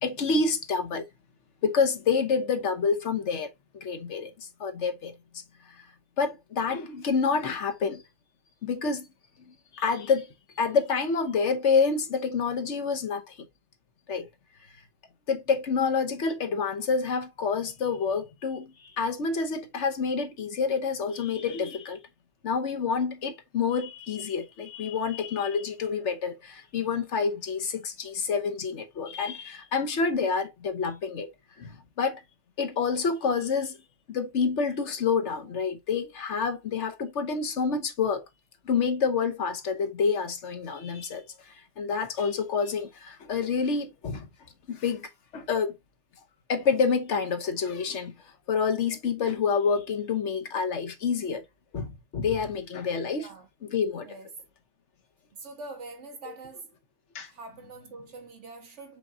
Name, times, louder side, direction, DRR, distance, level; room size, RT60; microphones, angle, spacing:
voice 1, 0.0-1.0 1.6-3.5 3.7-5.1 6.2-8.0 8.6-9.1 9.7-10.3 10.6-13.4 14.1-14.3 15.3-22.0 22.4-31.3 31.6-32.2 32.6-33.8 34.1-38.2 38.6-41.2 41.8-44.3 44.7-45.8 46.5-48.1 48.5-51.4 51.7-53.3 53.6-54.1 56.3-56.4 57.1-57.3, left 5 dB, 70° left, 1.2 m, -28 dB
voice 2, 55.3-56.7 57.3-59.0, right 3 dB, 65° right, 1.5 m, -44 dB
5.2 x 3.7 x 2.7 m
omnidirectional pair, 1.3 m